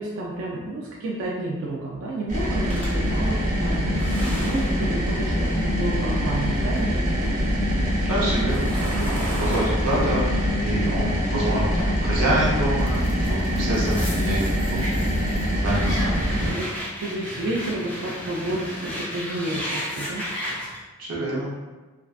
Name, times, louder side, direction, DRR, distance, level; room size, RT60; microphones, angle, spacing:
voice 1, 0.0-7.4 16.5-16.7 17.0-20.2, right 1 dB, 65° right, -4 dB, 0.4 m, -30 dB
sound 1, 2.3-16.5, equal, 35° right, 0.7 m, -24 dB
sound 2, 2.7-7.0 7.3-12.2 12.8-20.8, equal, 5° left, 0.4 m, -35 dB
voice 2, 8.0-14.4 14.7-16.6 21.0-21.5, right 1 dB, 80° right, -5 dB, 0.8 m, -27 dB
2.3 x 2.2 x 2.3 m, 1.3 s
head